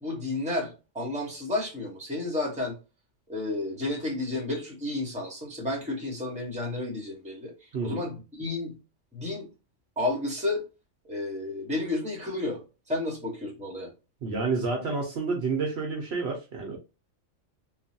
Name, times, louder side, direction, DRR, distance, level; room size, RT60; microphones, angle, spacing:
voice 1, 0.0-2.8 3.3-8.7 9.1-9.5 10.0-10.6 11.0-12.6 12.9-13.9, left 2 dB, 5° right, 0.8 m, -31 dB
voice 2, 14.2-16.8, right 4 dB, 60° right, 0.8 m, -29 dB
3.1 x 2.2 x 2.6 m
omnidirectional pair, 1.3 m